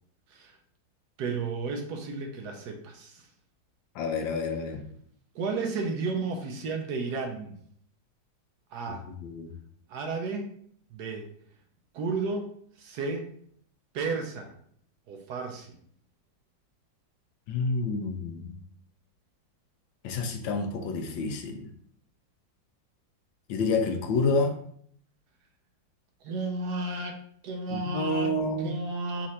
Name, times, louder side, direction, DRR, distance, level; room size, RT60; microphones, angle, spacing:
voice 1, 1.2-3.2 5.3-7.6 8.7-9.0 9.9-10.5 10.9-11.3 11.9-12.5 12.8-13.2 13.9-14.5 15.1-15.8 26.2-29.3, right 3 dB, 70° right, 2 dB, 1.1 m, -33 dB
voice 2, 4.0-4.8 9.1-9.5 17.5-18.6 20.0-21.7 23.5-24.6 27.7-28.7, left 3 dB, 85° left, 5 dB, 1.4 m, -29 dB
4.3 x 2.5 x 4.1 m, 0.63 s
omnidirectional pair, 2.0 m